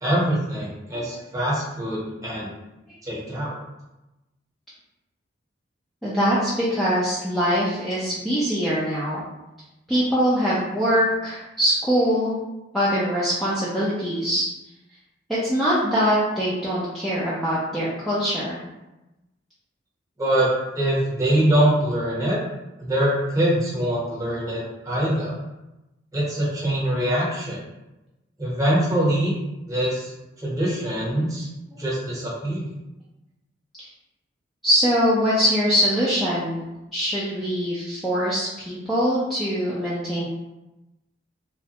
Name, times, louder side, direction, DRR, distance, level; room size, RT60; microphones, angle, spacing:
voice 1, 0.0-2.5 3.0-3.5 20.2-22.4 22.8-25.3 26.1-27.6 28.4-29.3 29.7-30.1 30.4-31.5 31.8-32.7, right 1 dB, 20° right, -6 dB, 0.9 m, -23 dB
voice 2, 6.0-9.2 9.9-12.4 12.7-14.5 15.4-18.6 31.7-31.9 33.8-33.9 34.6-36.6 36.9-40.2, equal, ahead, -10 dB, 0.4 m, -23 dB
3.1 x 2.1 x 2.8 m, 0.99 s
head